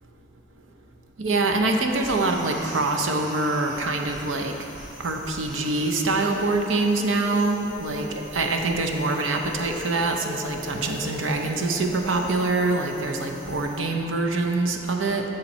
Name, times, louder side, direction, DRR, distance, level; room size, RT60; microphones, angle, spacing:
voice 1, 1.2-4.5 5.0-15.2, right 2 dB, 80° right, 3 dB, 0.7 m, -25 dB
sound 1, 1.9-13.8, equal, 40° right, 1.9 m, -45 dB
sound 2, 6.1-12.9, left 3 dB, 25° left, 0.7 m, -40 dB
7.1 x 6.5 x 4.2 m, 2.7 s
head